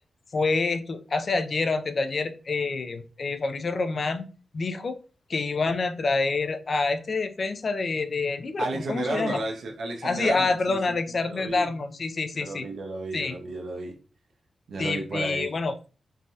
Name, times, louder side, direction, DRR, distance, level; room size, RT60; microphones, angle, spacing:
voice 1, 0.3-4.3 4.5-5.0 5.3-9.4 10.0-12.7 13.1-13.4 14.8-15.7, left 3 dB, 40° left, 0.3 m, -27 dB
voice 2, 8.6-11.0 11.2-11.7 12.3-14.0 14.7-15.5, right 2 dB, 80° right, 0.6 m, -32 dB
3.2 x 2.2 x 2.6 m
wide cardioid pair, 155°, 0 cm